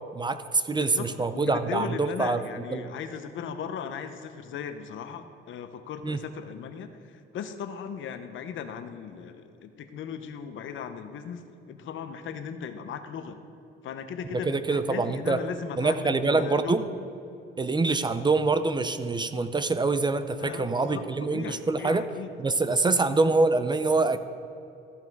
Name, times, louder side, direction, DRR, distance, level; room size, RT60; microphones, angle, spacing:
voice 1, 0.2-2.4 2.7-2.9 6.0-6.2 14.5-15.4 15.8-16.8 17.6-22.0 22.4-24.2, right 3 dB, 20° right, 11 dB, 0.5 m, -25 dB
voice 2, 0.8-1.1 1.3-13.4 13.8-16.8 17.6-17.8 20.4-22.3 22.9-23.0, left 7 dB, 70° left, 9 dB, 0.8 m, -37 dB
14.0 x 5.6 x 4.7 m, 2.7 s
cardioid pair, 95°, 21 cm